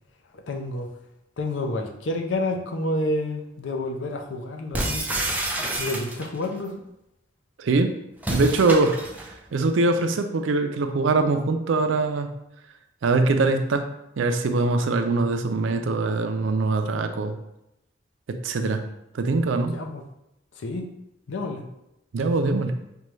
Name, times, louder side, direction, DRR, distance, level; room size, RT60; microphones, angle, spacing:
voice 1, 0.3-0.9 1.4-5.0 5.8-6.8 19.7-20.0 20.6-20.9 21.3-21.6, left 2 dB, 75° left, 4 dB, 0.5 m, -29 dB
sound 1, 4.7-6.5 8.2-9.3, right 1 dB, 10° right, 0.5 m, -28 dB
voice 2, 7.6-7.9 8.3-9.0 9.5-12.3 13.0-13.9 14.2-17.3 18.4-18.8 19.1-19.7 22.1-22.7, right 3 dB, 80° right, 7 dB, 0.4 m, -22 dB
5.2 x 2.2 x 3.1 m, 0.86 s
head